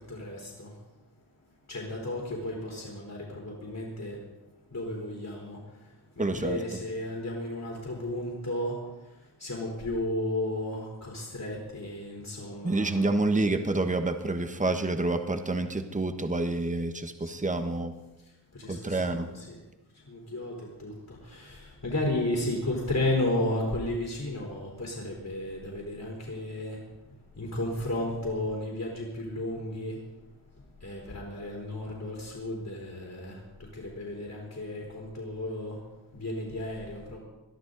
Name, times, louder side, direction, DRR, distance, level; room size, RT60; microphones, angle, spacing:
voice 1, 0.1-0.7 1.7-4.2 4.7-5.6 6.2-8.8 9.4-13.0 18.6-19.6 20.1-20.9 21.3-26.8 27.4-30.0 30.8-33.3 33.7-35.8 36.1-37.2, left 1 dB, 50° left, -3 dB, 4.2 m, -33 dB
voice 2, 6.2-6.8 12.6-17.9 18.7-19.3, right 2 dB, 20° right, 7 dB, 1.2 m, -28 dB
21.5 x 12.5 x 4.0 m, 1.1 s
wide cardioid pair, 70°, 42 cm